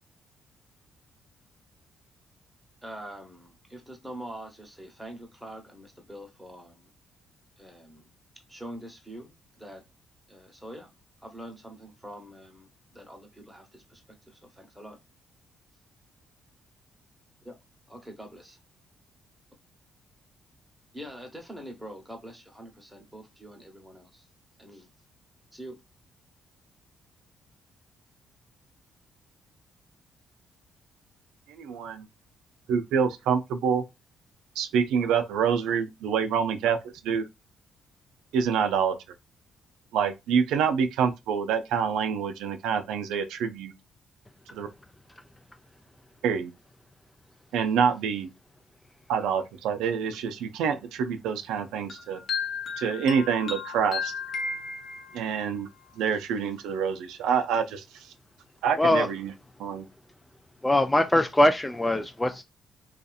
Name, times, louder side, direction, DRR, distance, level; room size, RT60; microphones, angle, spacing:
voice 1, 2.8-6.9 7.6-8.0 8.5-9.8 10.3-10.9 11.2-15.0 17.4-17.6 17.9-18.6 20.9-24.3 24.6-24.9 25.5-25.8, equal, 5° right, 1.0 m, -44 dB
voice 2, 31.6-32.1 32.7-33.8 34.6-36.8 37.0-37.2 38.3-39.0 39.9-43.7 44.5-44.7 46.2-46.5 47.5-48.3 49.1-52.2 52.8-54.1 55.1-55.7 56.0-58.1 58.6-59.3 59.6-59.9, right 7 dB, 90° right, 0.4 m, -26 dB
sound 1, 51.9-55.4, left 5 dB, 55° left, 0.6 m, -34 dB
voice 3, 60.6-62.4, left 1 dB, 10° left, 0.3 m, -22 dB
2.7 x 2.4 x 2.3 m
cardioid pair, 90°, 0 cm